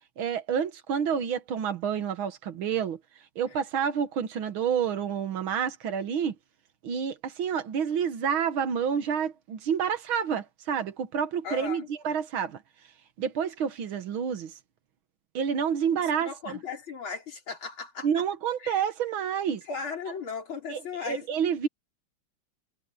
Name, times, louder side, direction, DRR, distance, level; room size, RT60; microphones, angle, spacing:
voice 1, 0.2-3.0 3.4-6.4 6.8-12.6 13.2-14.6 15.3-16.6 18.0-19.6 20.7-21.7, right 7 dB, 80° right, 2.1 m, -29 dB
voice 2, 11.4-11.9 16.2-18.1 18.6-18.7 19.6-21.3, left 5 dB, 80° left, 4.7 m, -36 dB
omnidirectional pair, 2.2 m